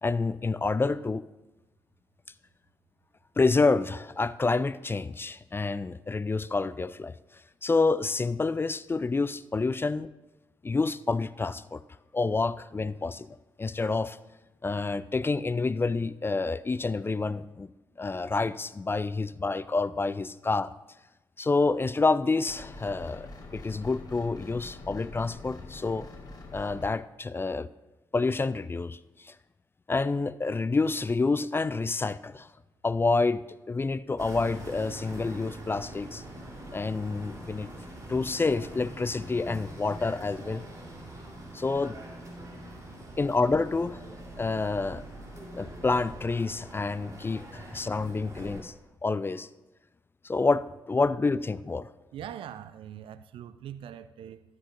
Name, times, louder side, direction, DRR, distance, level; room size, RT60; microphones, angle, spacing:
voice 1, 0.0-1.3 3.4-7.1 7.6-10.1 10.6-11.8 12.1-14.2 14.6-17.7 18.0-20.7 21.4-26.1 26.5-27.7 28.1-29.3 29.9-32.5 32.8-33.4 33.7-36.2 36.7-37.7 38.1-40.6 41.5-42.0 43.2-44.0 44.4-45.0 45.5-48.7 49.0-49.5 50.2-51.9, left 3 dB, 20° left, 0.3 m, -28 dB
sound 1, 22.5-26.9, left 2 dB, 40° left, 1.8 m, -45 dB
sound 2, 34.2-48.6, right 1 dB, 35° right, 3.4 m, -44 dB
voice 2, 52.1-54.4, right 10 dB, 60° right, 0.5 m, -42 dB
12.5 x 9.6 x 2.6 m
hypercardioid pair, 40°, 10 cm